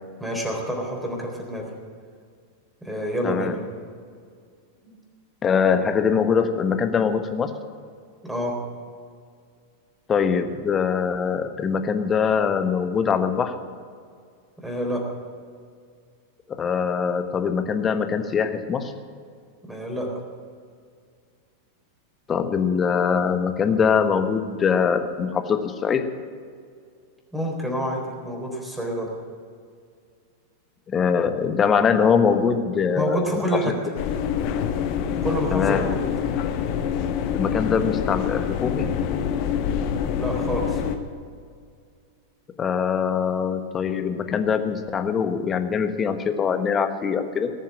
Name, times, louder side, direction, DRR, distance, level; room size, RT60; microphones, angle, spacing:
voice 1, 0.2-1.7 2.8-3.6 4.8-5.0 8.2-8.6 14.6-15.0 19.6-20.1 27.3-29.1 33.0-33.8 35.2-36.1 40.2-40.8, equal, 5° right, 0 dB, 3.9 m, -28 dB
voice 2, 3.2-3.6 5.4-7.5 10.1-13.5 16.5-18.9 22.3-26.0 30.9-33.4 35.5-35.9 37.3-39.0 42.6-47.5, left 6 dB, 20° left, 7 dB, 1.2 m, -23 dB
sound 1, 33.9-41.0, left 8 dB, 45° left, 1.2 m, -26 dB
19.0 x 7.4 x 8.7 m, 2.1 s
figure-of-eight pair, 90°, 0 cm